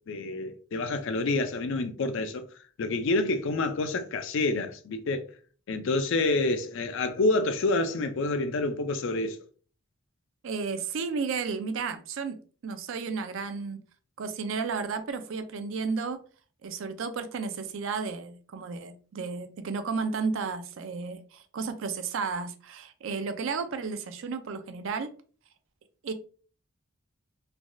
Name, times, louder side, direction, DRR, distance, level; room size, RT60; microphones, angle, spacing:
voice 1, 0.1-2.4 2.8-5.2 5.7-9.4, left 2 dB, 60° left, 0.4 m, -28 dB
voice 2, 10.4-12.4 12.6-13.8 14.2-16.2 16.6-25.1 26.0-26.1, right 5 dB, 60° right, 0.4 m, -33 dB
3.2 x 2.3 x 2.5 m
head